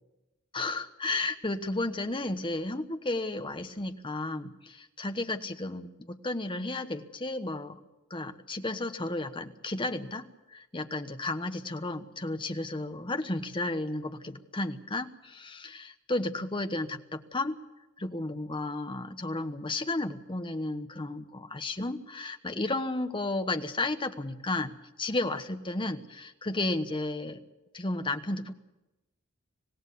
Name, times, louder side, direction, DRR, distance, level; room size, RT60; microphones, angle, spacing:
voice 1, 0.5-7.8 8.1-17.6 18.0-27.4 27.7-28.5, left 2 dB, 25° left, 7 dB, 1.2 m, -33 dB
26.0 x 17.5 x 7.0 m, 0.98 s
head